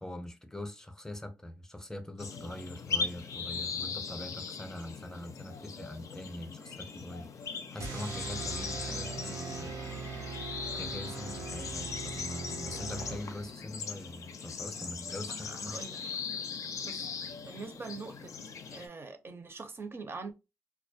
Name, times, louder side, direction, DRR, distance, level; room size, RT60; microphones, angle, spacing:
voice 1, 0.0-9.7 10.7-15.8, left 1 dB, 10° left, 0.6 m, -43 dB
sound 1, 2.2-18.9, left 5 dB, 65° left, 0.4 m, -39 dB
sound 2, 7.8-13.7, right 5 dB, 90° right, 0.5 m, -41 dB
voice 2, 15.5-16.0 16.8-17.1 17.4-18.3 18.7-20.3, right 4 dB, 45° right, 0.6 m, -43 dB
2.3 x 2.0 x 2.6 m
cardioid pair, 55°, 6 cm